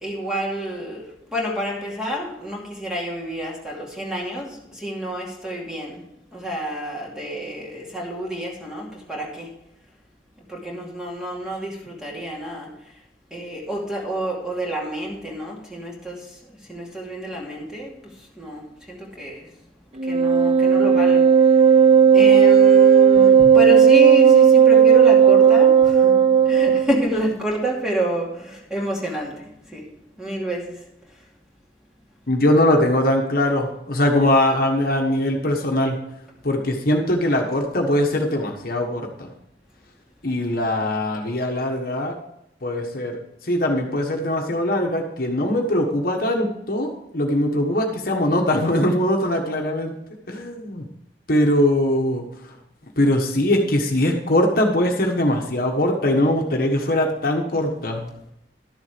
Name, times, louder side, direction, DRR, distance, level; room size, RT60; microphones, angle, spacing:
voice 1, 0.0-6.0 6.3-9.5 10.5-12.7 13.3-16.3 16.7-18.0 18.4-19.5 20.1-21.3 22.1-29.3 29.7-29.8 30.2-30.8, equal, 5° right, -2 dB, 2.5 m, -28 dB
Wind instrument woodwind instrument, 20.0-27.0, right 7 dB, 35° right, 0.6 m, -13 dB
voice 2, 32.3-36.0 36.4-39.3 40.2-42.1 42.6-43.2 43.4-49.9 50.3-50.8 51.3-52.5 53.0-58.1, left 1 dB, 55° left, 2 dB, 1.4 m, -21 dB
12.0 x 7.2 x 5.1 m, 0.83 s
head